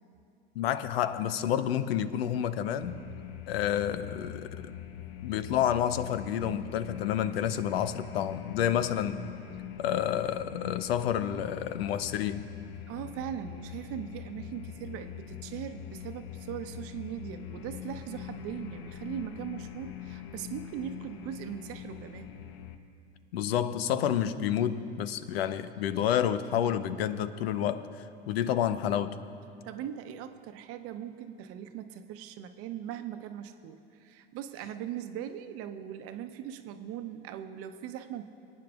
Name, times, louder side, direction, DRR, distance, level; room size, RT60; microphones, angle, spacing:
voice 1, 0.6-3.0 3.5-4.7 5.2-9.2 9.8-12.5 23.3-27.9 28.3-29.2, left 10 dB, 80° left, 13 dB, 0.6 m, -29 dB
sound 1, 2.8-22.8, left 11 dB, 55° left, 0.8 m, -43 dB
voice 2, 12.9-22.3 29.6-38.2, right 10 dB, 50° right, 8 dB, 0.8 m, -40 dB
27.5 x 9.4 x 2.4 m, 2.7 s
hypercardioid pair, 95°, 30 cm